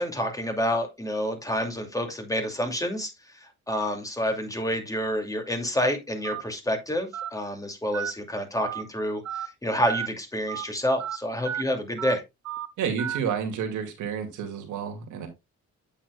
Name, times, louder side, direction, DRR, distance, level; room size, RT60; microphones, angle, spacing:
voice 1, 0.0-12.2, equal, 10° left, 4 dB, 2.5 m, -28 dB
Telephone, 6.2-6.4 7.1-7.3 7.9-8.1 8.6-8.8 9.3-9.5 9.9-10.1 10.5-10.6 11.0-11.2 11.5-11.6 12.0-12.2 12.5-12.7 13.0-13.2, right 10 dB, 60° right, 0.9 m, -32 dB
voice 2, 12.8-15.3, right 7 dB, 85° right, 4 dB, 2.4 m, -30 dB
8.7 x 7.5 x 2.3 m, 0.22 s
cardioid pair, 90°, 30 cm